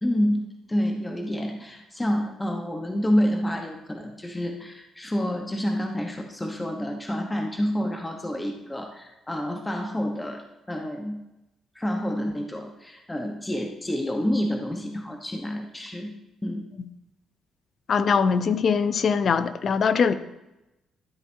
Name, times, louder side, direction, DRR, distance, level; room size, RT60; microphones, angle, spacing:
voice 1, 0.0-10.4 10.7-11.2 11.7-16.1 16.4-16.6, equal, 15° left, 3 dB, 1.0 m, -28 dB
voice 2, 17.9-20.1, left 6 dB, 50° left, 12 dB, 0.6 m, -22 dB
13.0 x 7.9 x 2.7 m, 0.95 s
cardioid pair, 90°, 0 cm